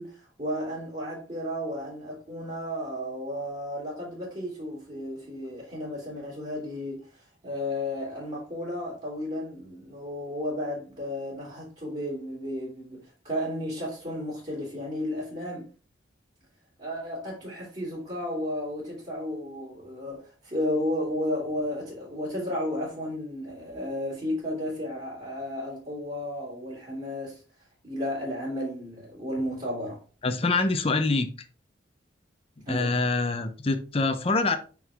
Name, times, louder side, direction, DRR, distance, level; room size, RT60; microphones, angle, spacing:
voice 1, 0.0-15.7 16.8-27.4 27.8-30.0 32.7-33.0, left 1 dB, 35° right, 2.7 m, -33 dB
voice 2, 30.2-31.3 32.7-34.6, left 3 dB, 30° left, 0.6 m, -25 dB
6.0 x 4.6 x 3.4 m
head